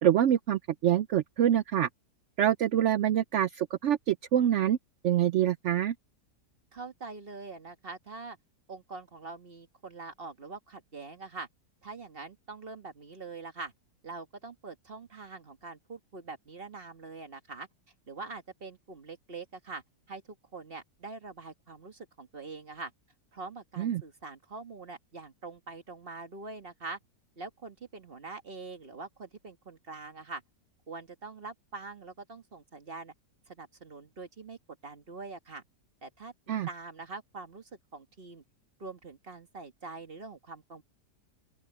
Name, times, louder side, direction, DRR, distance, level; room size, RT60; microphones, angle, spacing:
voice 1, 0.0-1.9 2.4-4.8 5.0-5.9 23.8-24.0 36.5-36.7, right 10 dB, 80° right, 0.6 m, -25 dB
voice 2, 6.7-8.4 8.7-11.5 11.8-13.7 14.0-17.7 18.1-20.2 20.5-22.9 23.3-27.0 27.4-30.4 30.9-33.1 33.5-35.6 36.0-36.3 36.7-38.4 38.8-40.8, right 3 dB, 35° right, 1.7 m, -44 dB
open air
omnidirectional pair, 1.8 m